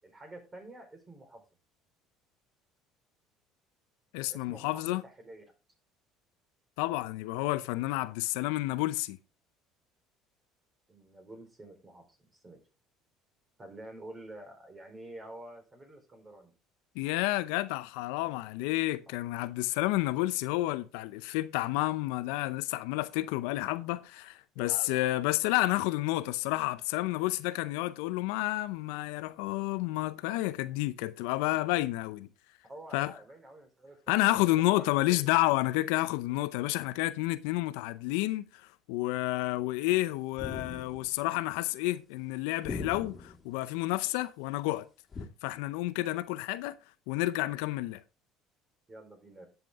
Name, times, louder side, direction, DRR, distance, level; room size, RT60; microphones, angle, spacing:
voice 1, 0.0-1.4 4.3-5.4 10.9-12.6 13.6-16.5 24.5-25.0 32.6-35.3 48.9-49.5, right 1 dB, 25° right, 4.3 m, -49 dB
voice 2, 4.1-5.0 6.8-9.2 17.0-32.3 32.9-33.1 34.1-44.9 45.4-46.8 47.1-48.0, left 18 dB, 80° left, 0.6 m, -30 dB
sound 1, 40.4-41.2 42.6-43.4 45.1-45.3, left 4 dB, 30° left, 2.2 m, -39 dB
11.0 x 7.3 x 3.6 m
hypercardioid pair, 75°, 0 cm